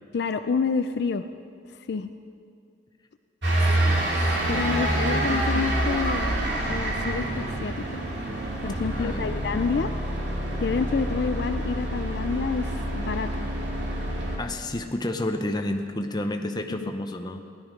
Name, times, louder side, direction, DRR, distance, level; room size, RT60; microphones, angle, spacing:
voice 1, 0.1-1.3 1.7-2.1 4.5-6.3 6.7-8.0 8.6-9.9 10.6-13.4 16.8-16.9, left 5 dB, 55° left, 9 dB, 0.4 m, -28 dB
sound 1, 3.4-14.4, right 1 dB, 65° right, 2.5 m, -27 dB
voice 2, 3.8-4.7 4.9-5.4 8.9-9.3 14.4-17.4, left 1 dB, 20° left, 5 dB, 0.7 m, -31 dB
16.0 x 11.0 x 5.2 m, 2.3 s
head